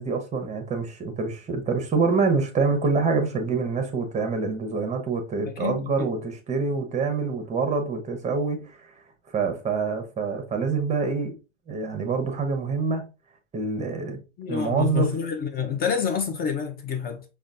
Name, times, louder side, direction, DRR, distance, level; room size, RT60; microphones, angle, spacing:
voice 1, 0.0-8.9 9.3-11.3 11.7-13.1 13.5-14.2 14.5-15.1, right 4 dB, 20° right, 0.8 m, -26 dB
voice 2, 5.4-6.1 14.4-17.2, left 7 dB, 25° left, 0.5 m, -28 dB
5.0 x 2.3 x 2.4 m
hypercardioid pair, 100°, 37 cm